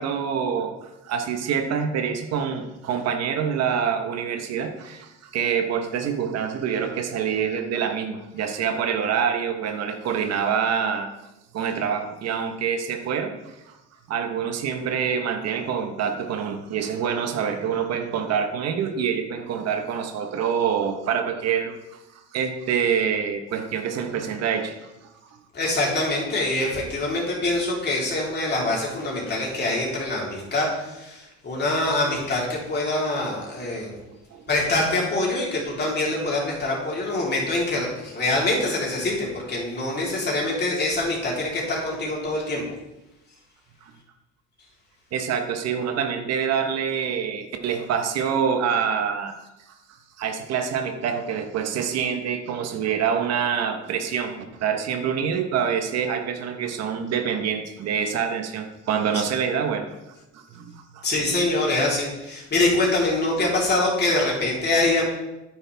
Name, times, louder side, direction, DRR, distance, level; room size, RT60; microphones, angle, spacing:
voice 1, 0.0-11.1 11.5-13.8 14.1-21.8 22.3-25.1 34.3-34.4 43.8-43.9 45.1-49.4 50.2-59.9 60.3-61.0, right 7 dB, 60° right, 5 dB, 1.3 m, -26 dB
voice 2, 25.5-34.0 34.5-42.6 59.1-59.2 61.0-65.0, left 2 dB, 35° left, -3 dB, 3.7 m, -24 dB
9.7 x 9.1 x 3.5 m, 0.97 s
cardioid pair, 105°, 29 cm